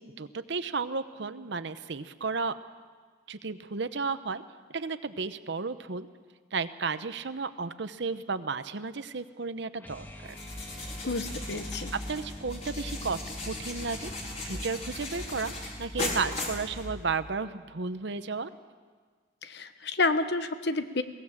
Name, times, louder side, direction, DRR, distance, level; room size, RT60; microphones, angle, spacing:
voice 1, 0.2-2.5 3.3-4.4 4.7-6.1 6.5-10.4 12.1-14.1 14.4-15.5 15.8-18.5, right 4 dB, 65° right, 12 dB, 0.9 m, -33 dB
sound 1, 9.8-15.9, left 1 dB, 10° left, 1.7 m, -47 dB
sound 2, 10.3-17.3, left 1 dB, 35° left, 4.4 m, -37 dB
voice 2, 11.0-11.9 19.4-21.0, left 3 dB, 60° left, 10 dB, 1.1 m, -29 dB
22.0 x 18.0 x 7.4 m, 1.5 s
head